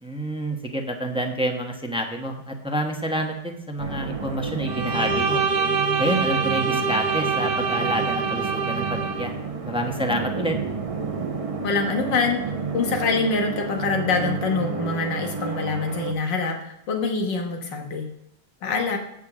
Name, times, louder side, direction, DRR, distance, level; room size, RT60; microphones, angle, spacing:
voice 1, 0.0-5.4 6.0-9.4 9.6-10.6, equal, 5° right, 3 dB, 0.8 m, -28 dB
sound 1, 3.8-16.1, right 5 dB, 55° right, 0.3 m, -31 dB
Bowed string instrument, 4.6-9.3, right 5 dB, 75° right, 1.8 m, -25 dB
voice 2, 11.6-12.4 12.7-18.1 18.6-19.0, left 4 dB, 90° left, 3 dB, 1.9 m, -25 dB
8.5 x 6.4 x 6.1 m, 0.80 s
omnidirectional pair, 1.9 m